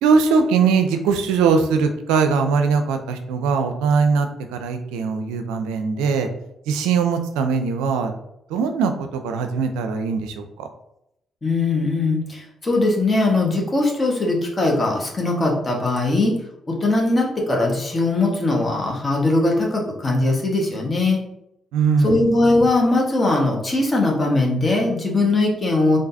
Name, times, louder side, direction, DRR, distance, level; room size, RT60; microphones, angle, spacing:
voice 1, 0.0-6.3 6.7-8.1 8.5-10.7 21.7-22.2, right 5 dB, 75° right, 7 dB, 0.4 m, -21 dB
voice 2, 11.4-16.4 16.7-21.2 22.0-26.0, left 2 dB, 35° left, -1 dB, 1.4 m, -20 dB
3.8 x 3.5 x 2.7 m, 0.81 s
hypercardioid pair, 40°, 0 cm